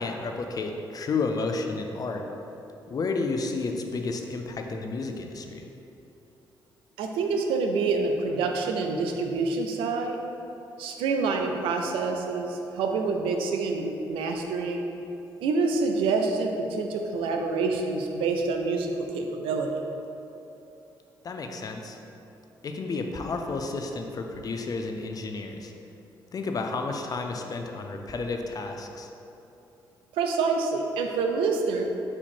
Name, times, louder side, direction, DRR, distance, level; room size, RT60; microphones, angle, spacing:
voice 1, 0.0-2.2 2.9-5.7 21.2-22.0 22.6-25.7 26.3-29.1, left 3 dB, 45° left, 4 dB, 0.5 m, -31 dB
voice 2, 7.0-10.2 10.8-14.8 15.4-19.8 30.1-31.8, right 4 dB, 85° right, 3 dB, 0.4 m, -27 dB
4.3 x 2.8 x 4.3 m, 2.9 s
supercardioid pair, 65°, 9 cm